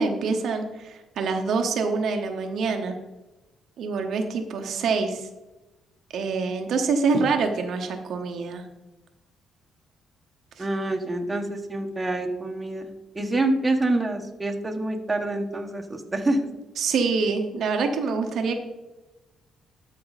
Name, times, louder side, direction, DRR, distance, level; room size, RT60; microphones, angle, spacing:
voice 1, 0.0-3.0 3.8-5.3 6.1-8.6 10.6-10.7 16.8-18.5, right 4 dB, 70° right, 4 dB, 1.0 m, -25 dB
voice 2, 10.6-16.4 18.4-18.5, right 2 dB, 20° right, 3 dB, 1.3 m, -27 dB
12.5 x 4.7 x 4.1 m, 1.0 s
cardioid pair, 90°, 0 cm